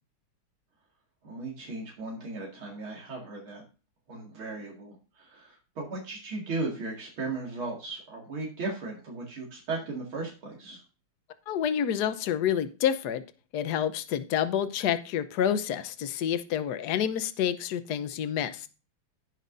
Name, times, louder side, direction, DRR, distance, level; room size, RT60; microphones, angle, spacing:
voice 1, 1.2-3.7 4.1-10.8, right 3 dB, 80° right, -2 dB, 3.0 m, -36 dB
voice 2, 11.5-13.2 13.5-18.7, left 9 dB, 60° left, 11 dB, 1.2 m, -28 dB
17.5 x 5.9 x 2.6 m, 0.34 s
omnidirectional pair, 2.2 m